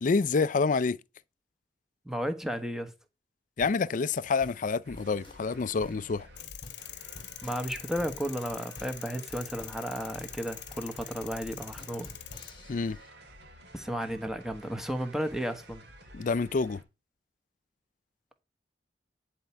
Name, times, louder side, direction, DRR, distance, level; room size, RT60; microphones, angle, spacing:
voice 1, 0.0-1.0 3.6-6.3 12.7-13.0 16.1-16.8, left 4 dB, 45° left, 0.4 m, -27 dB
voice 2, 2.0-2.9 7.4-12.1 13.7-15.8, equal, 5° right, 1.2 m, -33 dB
sound 1, 3.6-13.1, left 1 dB, 30° left, 1.5 m, -51 dB
sound 2, 4.8-16.8, equal, 65° right, 2.8 m, -52 dB
sound 3, 6.4-12.5, left 14 dB, 75° left, 0.8 m, -45 dB
10.5 x 4.4 x 7.0 m
head